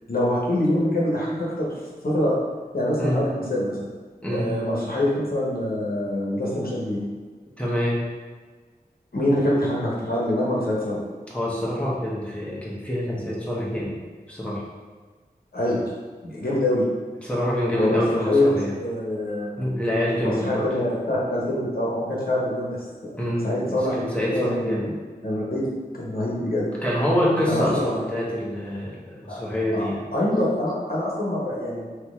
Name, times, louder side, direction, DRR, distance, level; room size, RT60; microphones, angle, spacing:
voice 1, 0.1-1.7 2.0-2.3 2.7-3.9 4.3-7.0 9.1-11.0 15.5-15.9 16.2-16.8 17.7-18.5 18.8-19.6 20.2-24.0 24.3-24.9 25.2-25.7 26.0-26.7 27.4-27.9 29.3-29.4 29.7-31.9, left 1 dB, 70° left, -5 dB, 1.1 m, -25 dB
voice 2, 7.6-8.0 11.3-13.9 14.3-14.6 17.2-18.7 19.6-20.7 23.2-24.8 26.8-30.0, equal, 5° left, -6 dB, 1.1 m, -26 dB
3.9 x 2.9 x 3.6 m, 1.4 s
wide cardioid pair, 40°, 16 cm